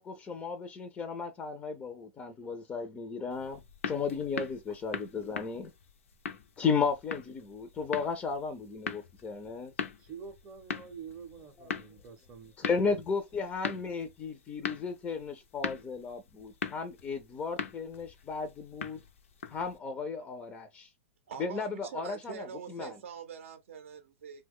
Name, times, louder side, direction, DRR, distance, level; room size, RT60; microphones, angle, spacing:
voice 1, 0.0-5.7 6.6-9.7 11.6-11.7 12.6-19.0 19.5-20.9 21.4-23.0, left 5 dB, 20° left, 0.4 m, -34 dB
sound 1, 3.3-19.8, left 7 dB, 80° left, 0.6 m, -41 dB
voice 2, 10.0-12.8, right 6 dB, 30° right, 0.6 m, -47 dB
voice 3, 21.3-24.4, right 7 dB, 75° right, 0.5 m, -44 dB
2.9 x 2.2 x 3.5 m
hypercardioid pair, 130°, 7 cm